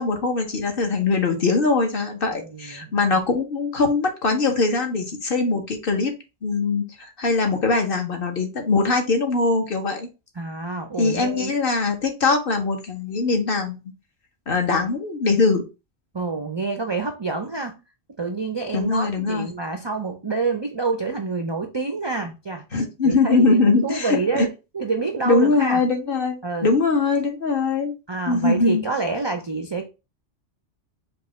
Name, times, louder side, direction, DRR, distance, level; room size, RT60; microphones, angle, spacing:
voice 1, 0.0-6.1 6.4-10.1 11.0-13.8 14.5-15.6 18.7-19.5 22.7-24.5 25.2-27.9 28.3-28.8, left 3 dB, 50° left, 1.1 m, -22 dB
voice 2, 2.4-2.9 10.4-11.5 16.1-17.8 18.2-22.7 23.0-25.8 26.4-26.7 28.1-29.9, right 4 dB, 45° right, 0.3 m, -27 dB
5.2 x 2.4 x 4.2 m
omnidirectional pair, 1.2 m